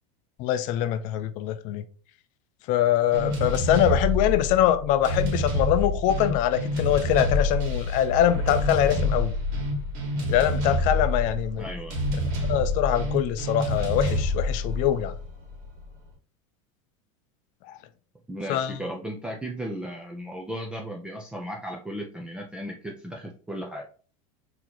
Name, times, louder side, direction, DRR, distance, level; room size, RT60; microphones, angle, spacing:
voice 1, 0.4-1.8 2.7-9.3 10.3-11.7 12.5-15.1 17.7-17.8 18.5-18.8, left 11 dB, 50° left, 0.5 m, -23 dB
sound 1, 3.1-15.9, left 1 dB, 55° right, 1.5 m, -27 dB
voice 2, 11.6-12.0 18.3-23.9, equal, 5° right, 0.5 m, -35 dB
3.9 x 2.9 x 2.9 m
supercardioid pair, 125°, 17 cm